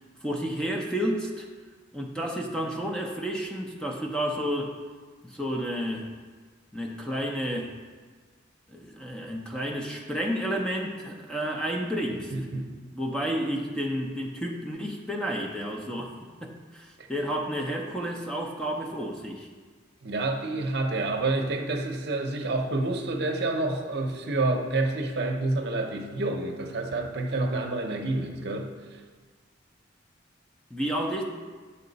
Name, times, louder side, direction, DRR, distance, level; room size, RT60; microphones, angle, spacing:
voice 1, 0.2-1.5 1.9-4.8 5.2-6.1 6.7-7.7 8.7-12.3 12.9-19.5 30.7-31.2, equal, 5° left, 0 dB, 0.5 m, -31 dB
voice 2, 12.3-12.7 17.0-17.1 20.0-29.0, right 2 dB, 55° right, 3 dB, 0.7 m, -28 dB
7.6 x 5.6 x 4.0 m, 1.5 s
head